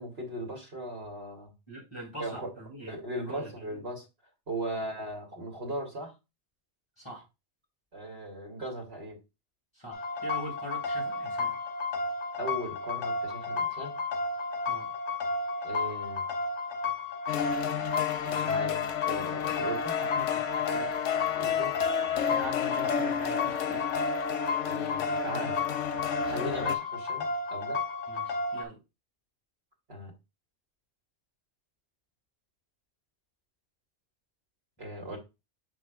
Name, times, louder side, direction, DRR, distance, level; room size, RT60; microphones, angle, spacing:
voice 1, 0.0-1.5 2.2-2.5 2.9-4.0 4.5-6.1 7.9-9.2 12.4-13.9 15.6-16.2 18.2-20.0 21.4-21.8 22.3-22.4 24.6-25.6 26.2-27.8 29.9-30.1 34.8-35.2, right 1 dB, 60° right, 2.4 m, -38 dB
voice 2, 1.7-3.8 4.6-4.8 7.0-7.3 9.7-11.5 14.7-14.9 19.6-21.2 22.3-23.8 28.1-28.8, equal, 20° left, 2.4 m, -43 dB
sound 1, 9.9-28.6, left 3 dB, 70° left, 1.2 m, -33 dB
sound 2, 17.3-26.8, left 9 dB, 90° left, 1.0 m, -31 dB
6.4 x 6.1 x 2.4 m
omnidirectional pair, 1.2 m